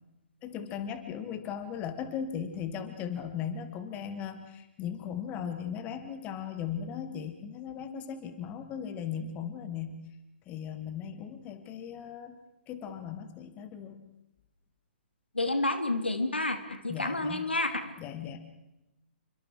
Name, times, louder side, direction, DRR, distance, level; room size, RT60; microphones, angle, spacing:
voice 1, 0.4-10.1 10.5-12.4 12.7-14.1 16.9-17.5 18.0-18.4, left 8 dB, 25° left, 9 dB, 2.5 m, -37 dB
voice 2, 15.3-17.9, left 2 dB, 85° left, 8 dB, 2.7 m, -30 dB
29.5 x 25.0 x 4.7 m, 0.94 s
figure-of-eight pair, 120°, 6 cm